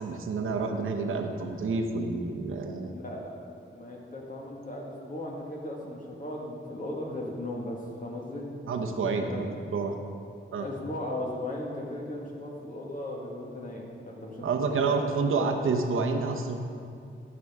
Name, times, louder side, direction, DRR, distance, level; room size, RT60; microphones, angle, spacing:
voice 1, 0.0-2.9 8.7-9.9 10.5-10.7 14.4-16.6, right 4 dB, 80° right, 3 dB, 0.8 m, -29 dB
voice 2, 2.9-3.3 3.7-8.5 9.3-9.4 10.6-14.5 14.9-15.0 15.3-15.6, left 1 dB, 40° left, -2 dB, 1.6 m, -37 dB
12.0 x 6.1 x 3.5 m, 2.4 s
wide cardioid pair, 90°, 21 cm